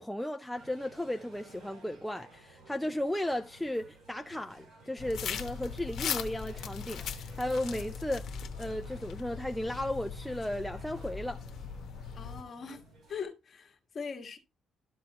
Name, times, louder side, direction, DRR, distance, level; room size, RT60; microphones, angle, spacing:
voice 1, 0.0-8.3 8.6-11.4, left 1 dB, 5° left, 0.4 m, -35 dB
sound 1, 0.5-13.3, right 3 dB, 55° right, 4.6 m, -56 dB
sound 2, 5.0-12.4, left 7 dB, 60° left, 1.0 m, -39 dB
voice 2, 12.1-12.8 13.1-14.4, left 6 dB, 35° left, 1.5 m, -41 dB
12.5 x 4.8 x 2.8 m
cardioid pair, 155°, 0 cm